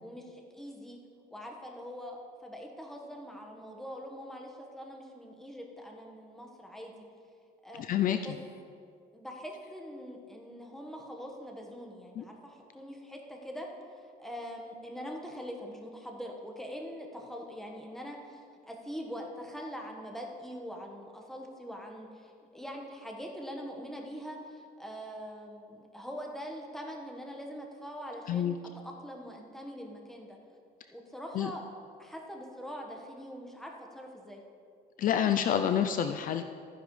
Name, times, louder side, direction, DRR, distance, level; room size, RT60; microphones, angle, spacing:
voice 1, 0.0-1.0 1.3-7.0 7.6-7.9 8.2-8.3 9.1-13.7 14.2-28.5 28.8-30.4 30.9-31.6 32.0-34.4, equal, ahead, 0 dB, 1.4 m, -43 dB
voice 2, 7.8-8.2 12.2-12.3 28.3-28.6 31.3-31.5 35.0-36.4, left 9 dB, 55° left, 8 dB, 0.5 m, -28 dB
13.5 x 10.0 x 3.2 m, 2.3 s
cardioid pair, 110°, 17 cm